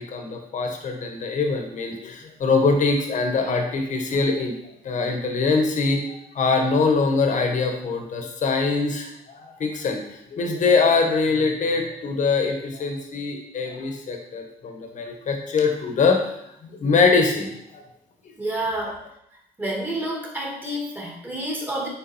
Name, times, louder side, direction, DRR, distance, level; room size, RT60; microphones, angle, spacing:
voice 1, 0.1-4.5 4.8-6.0 6.3-9.1 9.3-10.0 10.3-16.2 16.6-17.5 18.8-18.9, left 4 dB, 45° left, 3 dB, 1.7 m, -23 dB
voice 2, 18.4-19.0 19.6-21.9, right 1 dB, 10° right, -3 dB, 2.6 m, -29 dB
9.1 x 4.5 x 4.6 m, 0.78 s
cardioid pair, 110°, 17 cm